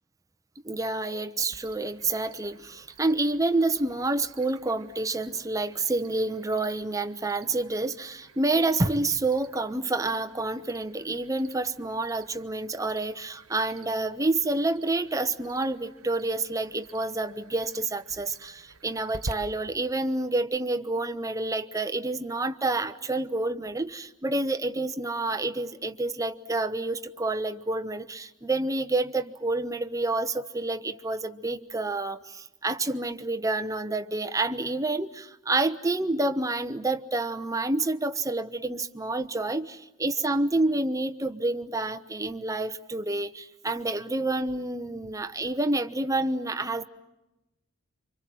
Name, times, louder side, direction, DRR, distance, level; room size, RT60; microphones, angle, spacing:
voice 1, 0.6-46.9, right 2 dB, 15° right, 7 dB, 1.0 m, -28 dB
Cricket, 1.5-19.3, right 2 dB, 90° right, 1.2 m, -49 dB
29.0 x 25.0 x 7.7 m, 1.0 s
head